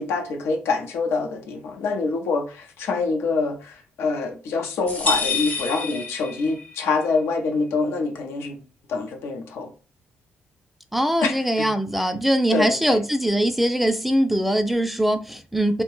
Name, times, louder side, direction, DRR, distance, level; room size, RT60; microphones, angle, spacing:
voice 1, 0.0-8.6 8.9-9.7 11.2-11.7 12.0-12.1 12.5-13.0, left 4 dB, 85° left, 0.5 m, -25 dB
sound 1, 4.9-6.8, left 4 dB, 40° left, 0.6 m, -27 dB
voice 2, 10.9-15.8, right 1 dB, 5° right, 0.3 m, -22 dB
2.7 x 2.1 x 3.0 m
cardioid pair, 85°, 4 cm